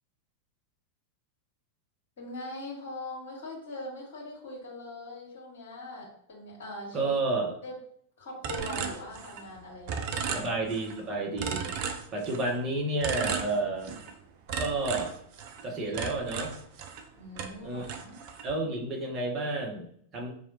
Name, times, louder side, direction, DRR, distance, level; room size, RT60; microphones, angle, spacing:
voice 1, 2.2-7.1 7.6-7.7 8.2-10.5 17.1-18.2, left 1 dB, 55° left, -3 dB, 1.6 m, -41 dB
voice 2, 6.9-7.5 10.3-11.7 12.1-13.9 14.6-15.1 15.6-16.6 17.6-17.9 18.4-20.3, right 2 dB, 30° right, 0 dB, 1.1 m, -31 dB
sound 1, 8.4-9.6 9.9-11.0 11.4-12.6 13.0-14.1 14.5-17.1 17.4-18.5, right 6 dB, 45° right, 0.5 m, -35 dB
4.7 x 3.0 x 2.8 m, 0.63 s
figure-of-eight pair, 90°, 0 cm